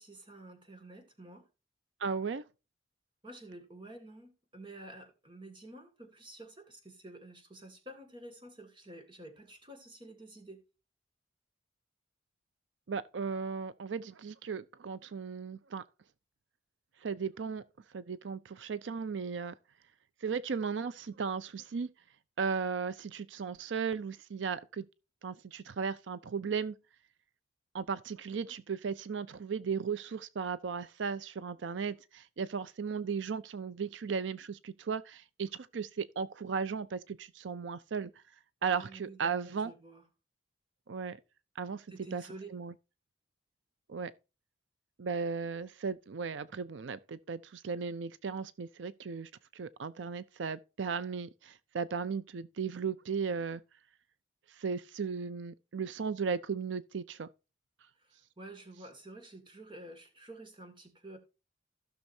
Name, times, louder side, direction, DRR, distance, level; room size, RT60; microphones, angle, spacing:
voice 1, 0.0-1.4 3.2-10.6 38.7-40.0 41.9-42.5 58.0-61.2, right 1 dB, 25° right, 2.1 m, -50 dB
voice 2, 2.0-2.4 12.9-15.8 17.0-17.6 17.9-19.5 20.2-21.9 22.4-24.8 25.2-26.8 27.7-38.1 38.6-39.7 40.9-41.2 41.6-41.8 42.1-42.2 42.5-42.7 43.9-44.1 45.0-53.6 54.6-57.3, right 5 dB, 90° right, 0.5 m, -36 dB
15.5 x 6.3 x 2.7 m
head